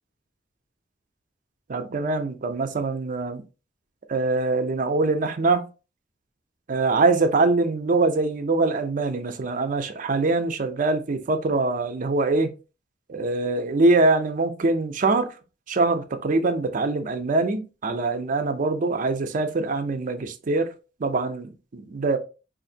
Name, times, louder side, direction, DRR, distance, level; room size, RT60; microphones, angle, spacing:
voice 1, 1.7-3.4 4.1-5.6 6.7-12.5 13.1-15.3 15.7-20.7 21.0-22.2, right 3 dB, 45° right, 0.5 m, -23 dB
4.0 x 2.5 x 2.7 m
head